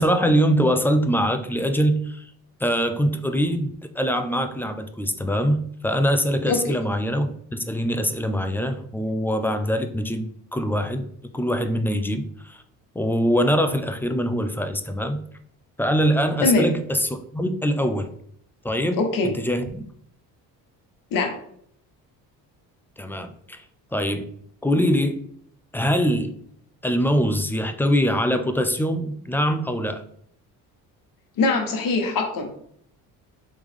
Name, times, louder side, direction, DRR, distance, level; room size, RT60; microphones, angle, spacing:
voice 1, 0.0-2.3 2.6-12.6 13.0-15.2 15.8-18.1 18.6-19.8 23.0-23.6 23.9-24.3 24.6-25.3 25.7-26.3 26.8-30.0, equal, 5° left, 7 dB, 0.3 m, -23 dB
voice 2, 19.0-19.3 21.1-21.3 31.4-32.5, left 3 dB, 60° left, 3 dB, 1.1 m, -22 dB
3.5 x 3.0 x 3.4 m, 0.66 s
supercardioid pair, 85°, 38 cm